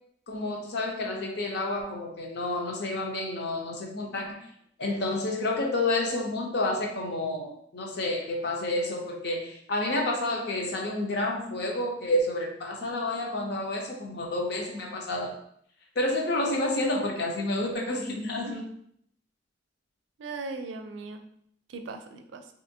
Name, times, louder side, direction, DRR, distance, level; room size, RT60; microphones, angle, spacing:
voice 1, 0.3-4.4 4.8-15.3 16.0-18.6, left 2 dB, 65° left, 0 dB, 0.7 m, -29 dB
voice 2, 20.2-21.3 21.7-22.5, right 3 dB, 90° right, 7 dB, 0.4 m, -39 dB
3.3 x 2.7 x 2.7 m, 0.68 s
head